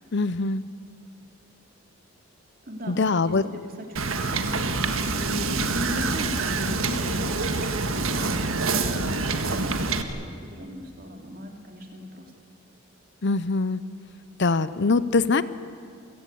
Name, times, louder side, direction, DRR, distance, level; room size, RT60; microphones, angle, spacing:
voice 1, 0.1-0.6 2.9-3.4 13.2-13.8 14.4-15.4, left 3 dB, 55° left, 15 dB, 0.7 m, -23 dB
voice 2, 2.6-12.3, equal, 40° right, 3 dB, 3.0 m, -38 dB
Wind / Boat Water vehicle, 4.0-10.0, right 3 dB, 65° right, 1.7 m, -26 dB
28.5 x 16.5 x 8.5 m, 2.4 s
head